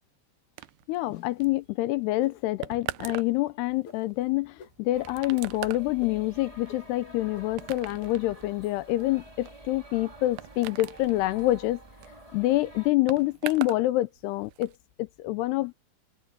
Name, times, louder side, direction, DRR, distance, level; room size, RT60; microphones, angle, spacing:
sound 1, 0.6-13.9 14.1-14.8, right 18 dB, 85° right, 2.2 m, -42 dB
voice 1, 0.9-11.8 12.3-14.7 15.0-15.7, left 17 dB, 80° left, 2.7 m, -27 dB
sound 2, 1.0-1.5 2.2-2.4 3.1-3.2 3.8-4.0 4.6-4.7 5.3-5.4 6.0-6.1 6.7-6.8 7.4-7.5 8.0-8.1, left 8 dB, 50° left, 3.0 m, -45 dB
sound 3, 4.9-12.9, right 1 dB, 20° right, 1.0 m, -49 dB
open air
omnidirectional pair, 5.0 m